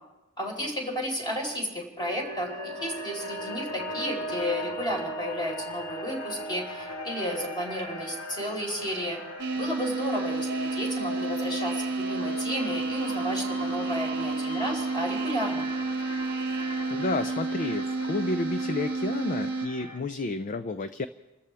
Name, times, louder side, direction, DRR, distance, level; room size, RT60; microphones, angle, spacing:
voice 1, 0.4-9.2 9.5-15.7, equal, 20° left, -1 dB, 4.4 m, -33 dB
sound 1, 2.0-20.0, equal, 80° left, 1.7 m, -38 dB
sound 2, 9.4-19.7, right 3 dB, 50° right, 0.6 m, -31 dB
voice 2, 16.9-21.1, left 3 dB, 35° left, 11 dB, 0.4 m, -31 dB
29.0 x 14.0 x 3.5 m, 1.1 s
head